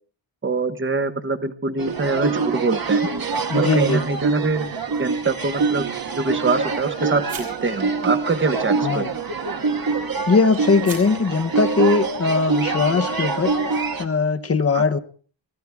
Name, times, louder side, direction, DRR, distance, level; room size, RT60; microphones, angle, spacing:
voice 1, 0.4-3.1 3.5-4.7 5.0-5.9 6.2-9.0 14.7-14.8, right 3 dB, 25° right, 9 dB, 1.1 m, -24 dB
sound 1, 1.8-14.0, right 4 dB, 50° right, 1.5 m, -25 dB
voice 2, 3.5-4.0 8.8-9.1 10.3-13.5 14.0-15.0, left 4 dB, 30° left, 10 dB, 0.9 m, -20 dB
sound 2, 4.3-12.0, right 5 dB, 80° right, 7.8 m, -46 dB
22.5 x 17.0 x 3.5 m, 0.43 s
wide cardioid pair, 170°, 46 cm